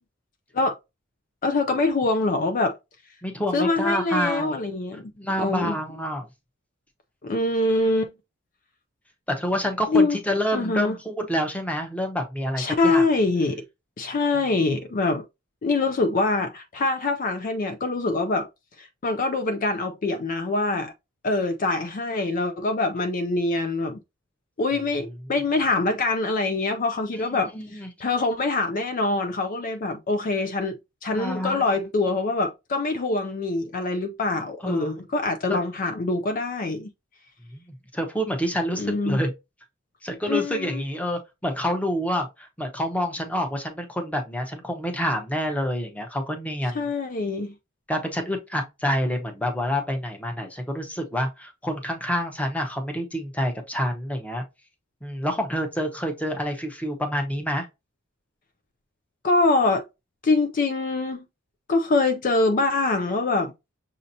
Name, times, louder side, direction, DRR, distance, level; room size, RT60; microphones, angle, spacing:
voice 1, 1.4-2.8 3.5-5.1 5.4-5.8 7.2-8.1 9.9-10.2 10.5-11.0 12.6-13.6 14.0-15.2 15.6-18.5 18.8-20.9 21.2-24.0 24.6-36.9 38.8-39.2 40.3-40.8 46.7-47.5 59.2-59.8 60.2-61.2 61.7-63.5, left 3 dB, 40° left, 0.4 m, -24 dB
voice 2, 3.2-4.6 5.2-6.3 9.3-13.0 27.5-27.9 31.1-31.8 34.6-35.0 35.5-35.6 37.5-37.6 37.9-39.3 40.0-46.9 47.9-54.4 55.0-57.7, equal, 5° left, 0.8 m, -27 dB
6.2 x 2.8 x 2.7 m
head